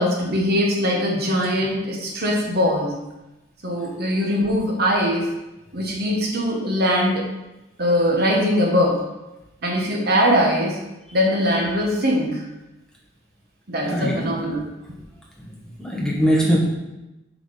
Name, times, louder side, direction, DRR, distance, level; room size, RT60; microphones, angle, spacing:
voice 1, 0.0-3.0 3.6-5.3 5.7-7.3 7.8-9.0 9.6-10.8 11.1-12.5 13.7-14.7, equal, 55° right, 0 dB, 1.5 m, -21 dB
voice 2, 13.8-14.4 15.8-16.6, equal, 5° left, -4 dB, 1.6 m, -21 dB
7.9 x 4.9 x 5.7 m, 0.99 s
head